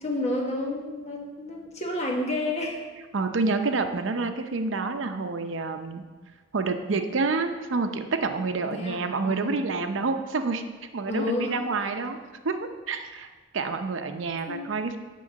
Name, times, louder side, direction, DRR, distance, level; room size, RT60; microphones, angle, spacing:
voice 1, 0.0-2.8 8.6-9.6 11.1-11.9 14.5-14.7, left 2 dB, 35° left, 0 dB, 1.4 m, -30 dB
voice 2, 3.1-6.0 6.5-10.6 10.9-12.2 12.4-13.3 13.5-15.0, right 3 dB, 80° right, 7 dB, 0.6 m, -28 dB
9.6 x 3.8 x 6.4 m, 1.3 s
head